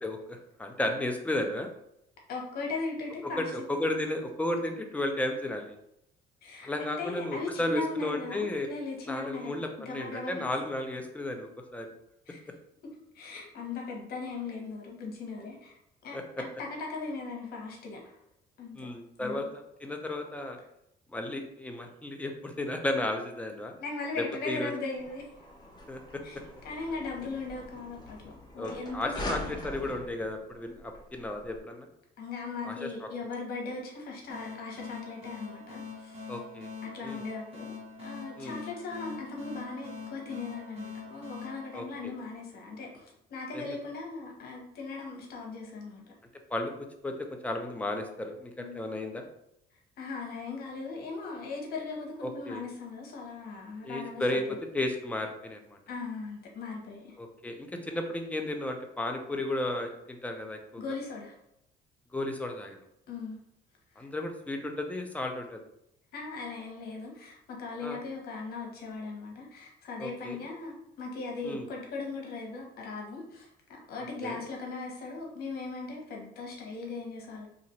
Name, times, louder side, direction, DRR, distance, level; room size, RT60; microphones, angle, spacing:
voice 1, 0.0-1.7 3.4-5.8 6.6-8.7 9.1-11.9 16.1-16.4 18.8-20.6 21.1-23.7 24.2-24.7 25.9-26.2 28.6-31.9 32.6-33.1 36.3-36.7 37.0-37.2 38.4-38.6 41.7-42.1 43.5-43.8 46.5-46.7 47.0-47.1 47.4-49.2 52.2-52.6 53.8-55.8 57.2-60.8 62.1-62.8 64.0-65.6 67.8-68.0 70.0-70.4 71.4-71.7 74.2-74.4, left 1 dB, 10° left, 3 dB, 0.5 m, -34 dB
voice 2, 2.3-3.7 6.4-9.6 9.8-10.5 12.3-12.4 13.1-18.2 18.6-18.9 19.2-19.5 23.8-25.3 26.2-26.4 26.6-29.1 29.4-29.5 32.2-36.3 36.8-37.7 38.0-46.0 48.6-48.8 50.0-54.4 55.9-57.2 60.8-61.3 63.1-63.4 64.0-64.1 66.1-77.5, left 3 dB, 65° left, 0 dB, 1.1 m, -38 dB
sound 1, 24.9-31.6, left 1 dB, 25° left, 1.0 m, -42 dB
sound 2, 34.3-42.6, left 5 dB, 35° right, 1.2 m, -44 dB
2.9 x 2.5 x 4.2 m, 0.79 s
cardioid pair, 110°, 17 cm